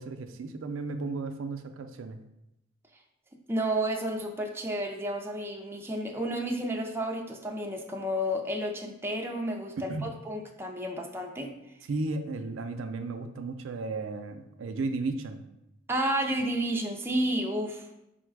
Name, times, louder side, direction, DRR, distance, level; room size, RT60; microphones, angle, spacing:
voice 1, 0.0-2.2 9.9-10.1 11.9-15.4, right 3 dB, 85° right, 7 dB, 0.4 m, -34 dB
voice 2, 3.5-11.5 15.9-17.8, right 1 dB, 10° right, 2 dB, 0.4 m, -31 dB
4.1 x 2.2 x 4.5 m, 0.86 s
head